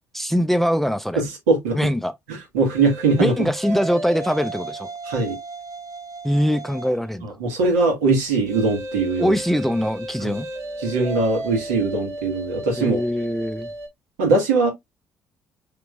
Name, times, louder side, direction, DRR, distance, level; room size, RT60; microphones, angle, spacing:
voice 1, 0.1-1.2 1.7-2.1 3.2-4.9 6.2-7.3 9.2-10.5 12.8-13.7, equal, 5° left, 0.4 m, -22 dB
voice 2, 1.1-1.8 2.3-3.5 5.0-5.3 7.2-9.4 10.2-10.3 10.8-13.0 14.2-14.7, right 3 dB, 80° right, 1.3 m, -21 dB
sound 1, 2.7-7.1 8.5-13.9, right 2 dB, 50° right, 1.2 m, -34 dB
5.0 x 3.0 x 2.3 m
hypercardioid pair, 50°, 8 cm